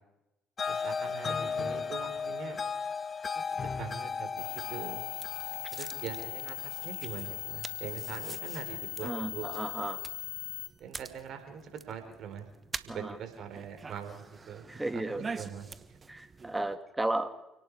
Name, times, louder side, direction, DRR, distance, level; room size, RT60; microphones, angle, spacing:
sound 1, 0.6-7.7, left 5 dB, 40° left, 1.1 m, -36 dB
voice 1, 0.7-2.6 3.8-5.0 5.7-6.6 6.8-9.5 10.8-12.5 12.8-16.0, right 7 dB, 60° right, 7 dB, 4.5 m, -43 dB
sound 2, 4.4-10.7, left 18 dB, 80° left, 1.9 m, -39 dB
sound 3, 4.5-16.8, right 4 dB, 35° right, 1.4 m, -47 dB
voice 2, 9.0-10.0 12.9-13.2 14.7-15.3 16.1-17.3, right 1 dB, 10° right, 9 dB, 2.4 m, -34 dB
29.0 x 18.5 x 4.9 m, 0.95 s
hypercardioid pair, 55°, 0 cm